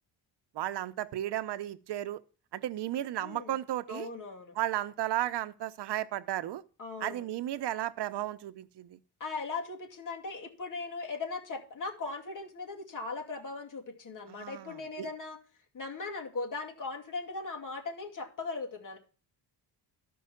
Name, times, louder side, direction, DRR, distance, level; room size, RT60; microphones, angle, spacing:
voice 1, 0.5-2.2 2.5-4.1 4.6-6.6 7.0-9.0 14.3-15.1, right 13 dB, 80° right, 0.7 m, -34 dB
voice 2, 3.2-3.5 3.9-4.5 6.8-7.3 9.2-15.4 15.7-19.0, left 3 dB, 50° left, 2.5 m, -39 dB
13.0 x 5.5 x 5.7 m
cardioid pair, 120°, 41 cm